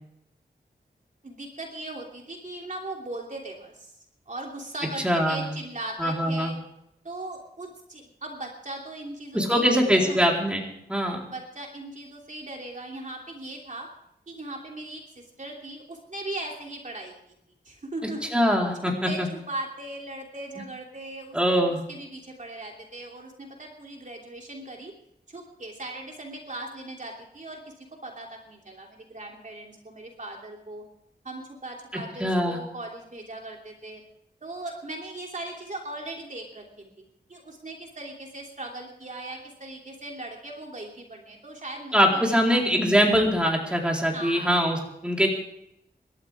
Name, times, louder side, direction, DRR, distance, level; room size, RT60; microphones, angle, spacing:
voice 1, 1.2-3.9 4.3-6.6 7.0-10.2 11.2-13.9 14.3-17.1 17.6-18.3 18.8-24.9 25.3-30.8 31.2-34.0 34.4-42.7 44.1-44.7, right 2 dB, 45° right, 0 dB, 3.0 m, -39 dB
voice 2, 5.0-5.5 6.0-6.5 9.3-10.6 10.9-11.2 18.3-19.3 21.3-21.8 31.9-32.6 41.9-45.3, equal, 5° right, -1 dB, 4.2 m, -23 dB
27.5 x 13.0 x 3.6 m, 0.78 s
wide cardioid pair, 85°, 18 cm